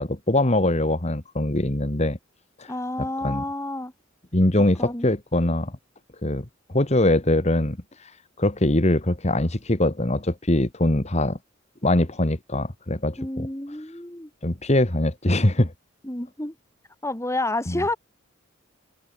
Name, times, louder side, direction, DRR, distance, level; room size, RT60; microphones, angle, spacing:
voice 1, 0.0-2.2 2.6-2.7 3.2-3.4 4.3-5.7 6.2-8.1 8.4-11.4 11.8-13.5 14.4-15.7 17.7-17.8, left 1 dB, 35° left, 1.8 m, -22 dB
voice 2, 2.7-3.9 4.8-5.1 13.2-14.3 16.0-16.5 17.0-18.0, left 2 dB, 15° left, 2.3 m, -29 dB
head